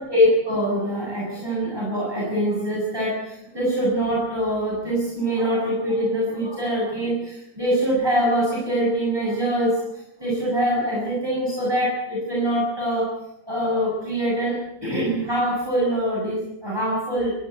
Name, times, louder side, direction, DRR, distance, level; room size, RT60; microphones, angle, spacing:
voice 1, 0.0-13.1 13.5-17.3, equal, 15° right, -5 dB, 7.7 m, -24 dB
27.5 x 15.0 x 8.2 m, 0.91 s
omnidirectional pair, 1.4 m